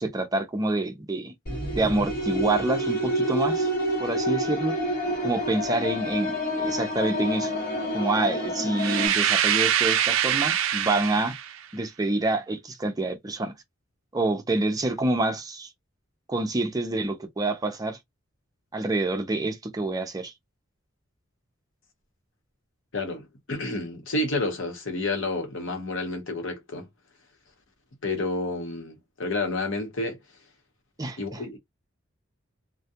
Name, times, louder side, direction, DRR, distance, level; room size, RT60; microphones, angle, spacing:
voice 1, 0.0-1.3 1.7-3.7 4.0-4.7 5.2-7.5 7.9-11.3 11.7-13.5 14.1-15.7 16.3-18.0 18.7-20.3 31.0-31.4, right 2 dB, 20° right, 0.5 m, -27 dB
sound 1, 1.5-9.1, equal, 50° left, 1.2 m, -28 dB
sound 2, 8.8-11.6, right 10 dB, 80° right, 0.4 m, -24 dB
voice 2, 22.9-26.9 28.0-30.2 31.2-31.6, left 2 dB, 70° left, 0.9 m, -30 dB
2.3 x 2.1 x 2.7 m
head